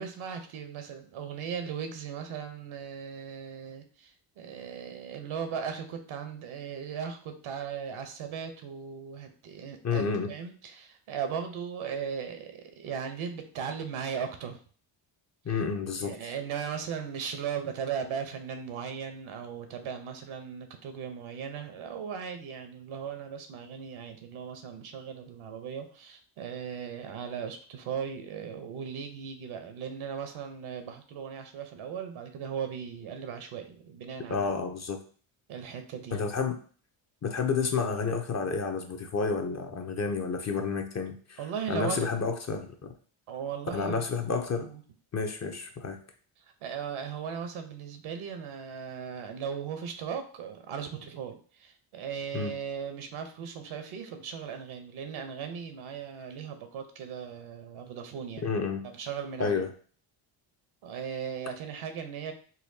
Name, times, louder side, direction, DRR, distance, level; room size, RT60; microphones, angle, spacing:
voice 1, 0.0-14.6 15.5-15.6 16.0-34.5 35.5-36.2 41.4-42.1 43.3-44.1 44.6-44.8 46.4-58.5 58.8-59.6 60.8-62.3, right 7 dB, 75° right, 7 dB, 0.8 m, -37 dB
voice 2, 9.8-10.3 15.4-16.3 34.3-35.0 36.1-36.6 37.2-41.4 41.7-42.9 43.7-44.7 45.1-46.0 52.3-52.5 58.4-58.8 59.4-59.7, left 5 dB, 35° left, 5 dB, 0.6 m, -30 dB
4.1 x 2.3 x 2.7 m, 0.43 s
cardioid pair, 75°, 49 cm